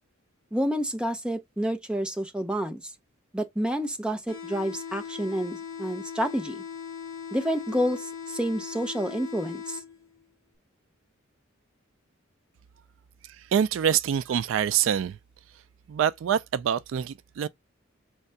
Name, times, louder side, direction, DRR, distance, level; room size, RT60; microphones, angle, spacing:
voice 1, 0.5-2.9 3.3-6.6 7.3-9.8, equal, 5° right, 0.6 m, -29 dB
sound 1, 4.3-10.3, left 7 dB, 75° left, 1.3 m, -39 dB
voice 2, 13.5-15.2 15.9-17.5, right 8 dB, 70° right, 0.3 m, -25 dB
4.5 x 3.3 x 2.6 m
head